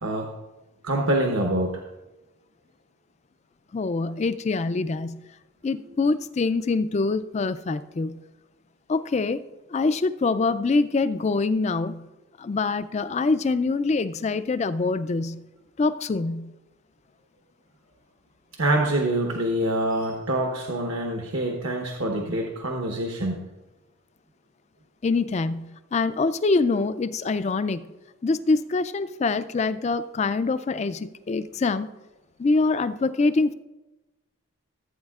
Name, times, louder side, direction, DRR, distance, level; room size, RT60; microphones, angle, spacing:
voice 1, 0.8-1.8 18.6-23.4, right 1 dB, 65° right, 0 dB, 1.0 m, -25 dB
voice 2, 3.7-5.2 5.6-8.2 8.9-9.4 9.7-12.0 12.4-15.4 15.8-16.5 25.0-27.9 28.2-31.9 32.4-33.5, left 3 dB, 30° left, 13 dB, 0.3 m, -25 dB
16.0 x 8.7 x 2.4 m, 1.1 s
head